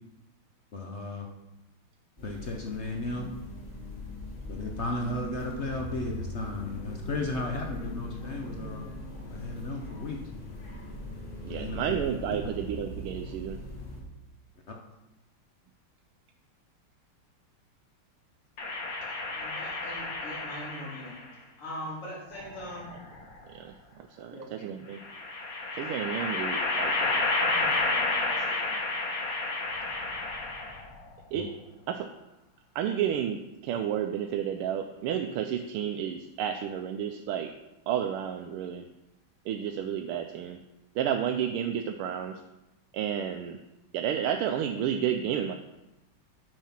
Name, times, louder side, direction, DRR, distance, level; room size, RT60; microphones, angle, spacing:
voice 1, 0.7-1.3 2.2-3.3 4.5-8.9 9.3-10.2 11.5-12.1 12.4-12.6 14.7-14.8 31.3-31.5, left 2 dB, 70° left, 2 dB, 0.6 m, -34 dB
sound 1, 2.2-14.0, equal, 25° left, 1.9 m, -40 dB
voice 2, 11.4-13.6 23.5-23.7 24.2-25.0 25.8-27.2 31.3-31.5 31.9-32.1 32.7-37.5 37.9-38.8 39.5-40.6 41.0-42.4 42.9-43.6 43.9-45.5, right 9 dB, 90° right, 5 dB, 1.5 m, -31 dB
sound 2, 18.6-21.2 22.4-23.4 25.0-31.0, left 3 dB, 45° left, 1.7 m, -31 dB
voice 3, 19.3-21.2 21.6-22.9 24.3-24.9 26.1-26.4 27.4-28.7, equal, 85° left, -6 dB, 4.2 m, -42 dB
9.3 x 5.6 x 5.8 m, 0.96 s
omnidirectional pair, 2.4 m